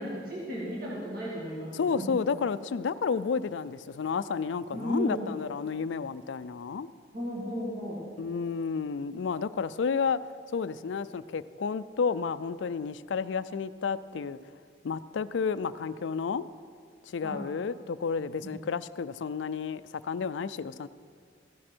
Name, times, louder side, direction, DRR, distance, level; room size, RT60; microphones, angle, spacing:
voice 1, 0.0-2.1 4.7-5.3 7.1-8.0 17.2-17.4 18.4-18.6, equal, 50° right, -6 dB, 2.0 m, -35 dB
voice 2, 1.7-6.9 8.2-10.2 10.5-14.4 14.8-16.5 17.0-20.9, left 5 dB, 70° left, 15 dB, 0.4 m, -31 dB
15.0 x 11.0 x 4.4 m, 2.1 s
head